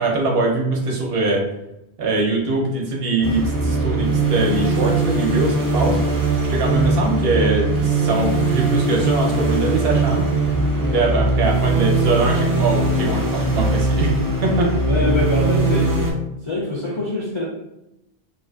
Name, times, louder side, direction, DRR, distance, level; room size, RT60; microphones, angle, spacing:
voice 1, 0.0-1.5 2.0-6.0 6.5-10.3 10.8-14.1 14.4-14.7, right 2 dB, 70° right, 0 dB, 0.8 m, -22 dB
sound 1, 3.2-16.1, right 2 dB, 30° right, 0.4 m, -20 dB
voice 2, 14.8-16.0 16.4-17.4, left 2 dB, 50° left, -5 dB, 0.3 m, -24 dB
2.5 x 2.4 x 2.2 m, 0.89 s
omnidirectional pair, 1.1 m